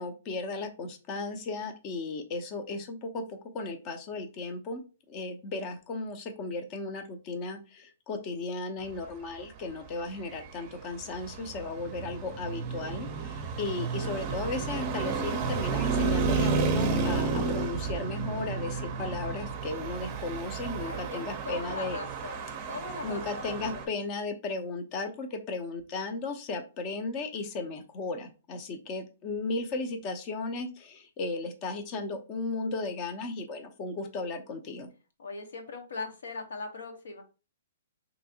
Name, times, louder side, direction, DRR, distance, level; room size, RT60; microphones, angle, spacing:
voice 1, 0.0-22.0 23.0-34.9, left 3 dB, 30° left, 6 dB, 0.6 m, -35 dB
Traffic noise roadway noise, 10.1-23.9, right 4 dB, 30° right, 0.5 m, -32 dB
voice 2, 20.8-23.8 35.2-37.2, left 3 dB, 80° left, 4 dB, 0.9 m, -40 dB
3.2 x 2.7 x 2.7 m, 0.33 s
hypercardioid pair, 150°, 0 cm